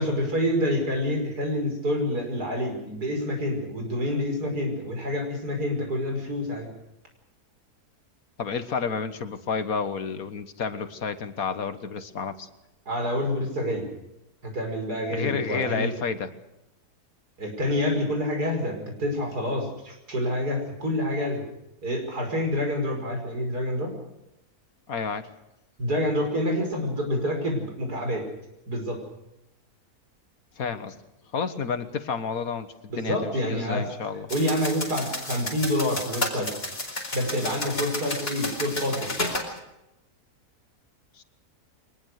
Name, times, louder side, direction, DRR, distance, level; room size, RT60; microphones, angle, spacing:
voice 1, 0.0-6.7 12.9-13.9 14.4-15.9 17.4-21.4 21.8-24.0 25.8-28.3 28.7-29.0 32.9-33.9 34.3-36.5 37.1-39.1, left 1 dB, 80° right, 3 dB, 6.0 m, -27 dB
voice 2, 8.4-12.5 15.1-16.3 24.9-25.3 30.6-31.0 31.3-34.3 41.2-41.3, left 5 dB, 65° left, 11 dB, 1.8 m, -30 dB
sound 1, 34.3-39.5, left 1 dB, 35° left, 4.7 m, -32 dB
23.0 x 20.0 x 6.6 m, 0.89 s
omnidirectional pair, 1.7 m